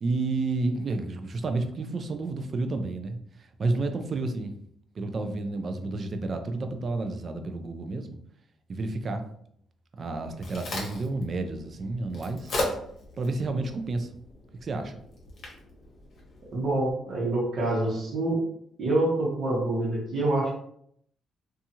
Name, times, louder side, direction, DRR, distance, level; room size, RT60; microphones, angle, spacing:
voice 1, 0.0-4.5 5.0-8.1 8.7-9.3 10.0-12.5 13.2-14.1 14.6-15.0, right 3 dB, 40° right, 7 dB, 0.3 m, -30 dB
Crack, 10.0-16.9, left 2 dB, 50° left, 0.9 m, -38 dB
voice 2, 16.5-18.4 18.8-20.5, right 2 dB, 55° right, -5 dB, 0.9 m, -26 dB
2.7 x 2.3 x 2.7 m, 0.69 s
cardioid pair, 140°, 0 cm